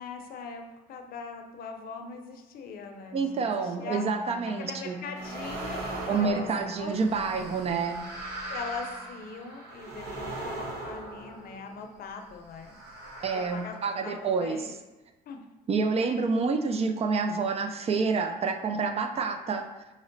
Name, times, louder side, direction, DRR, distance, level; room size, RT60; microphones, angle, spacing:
voice 1, 0.0-3.2 3.4-4.0 4.4-6.5 6.8-6.9 8.5-12.8 13.3-14.7 15.3-15.4, left 5 dB, 60° left, 4 dB, 0.6 m, -41 dB
sound 1, 2.9-9.4, equal, 10° right, 0.8 m, -46 dB
voice 2, 3.1-5.0 6.1-8.0 13.2-14.6 15.7-19.7, right 4 dB, 40° right, 7 dB, 0.4 m, -28 dB
sound 2, 5.2-11.9 12.6-14.4, right 2 dB, 70° right, 1.0 m, -40 dB
5.1 x 2.0 x 3.8 m, 1.1 s
cardioid pair, 110°, 17 cm